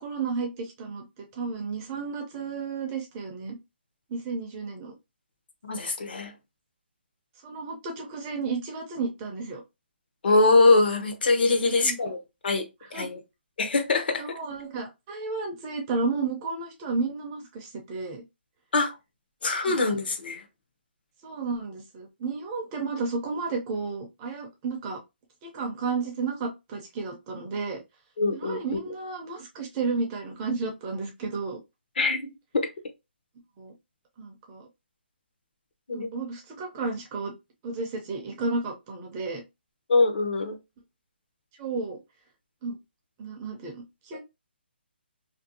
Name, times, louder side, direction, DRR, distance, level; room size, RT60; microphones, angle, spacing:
voice 1, 0.0-3.6 4.1-4.9 7.4-9.6 11.8-12.0 12.9-13.1 14.2-18.2 19.7-19.8 21.2-25.0 25.4-27.8 28.3-31.6 33.6-33.7 34.2-34.7 35.9-37.3 37.6-39.4 41.6-42.0 42.6-42.8 43.2-44.2, right 4 dB, 15° right, 0.4 m, -32 dB
voice 2, 5.6-6.3 10.2-12.2 12.4-12.7 12.9-13.2 13.6-14.4 18.7-18.9 19.4-20.4 28.2-28.8 32.0-32.7 35.9-36.1 39.9-40.6 44.1-44.2, left 3 dB, 60° left, 0.7 m, -23 dB
2.5 x 2.2 x 2.6 m
hypercardioid pair, 165°, 6 cm